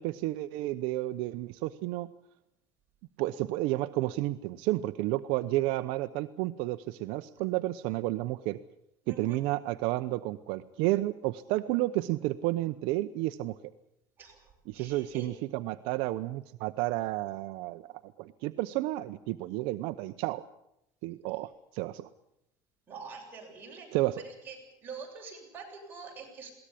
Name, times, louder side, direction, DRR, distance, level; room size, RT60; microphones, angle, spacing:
voice 1, 0.0-2.1 3.2-8.6 9.1-13.6 14.7-17.9 18.2-20.4 21.0-22.1 23.9-24.2, right 17 dB, 70° right, 10 dB, 0.8 m, -31 dB
voice 2, 9.0-9.4 14.2-15.3 22.9-23.9 24.2-26.5, right 4 dB, 20° right, -2 dB, 7.3 m, -46 dB
21.5 x 18.0 x 8.5 m, 0.82 s
cardioid pair, 155°, 9 cm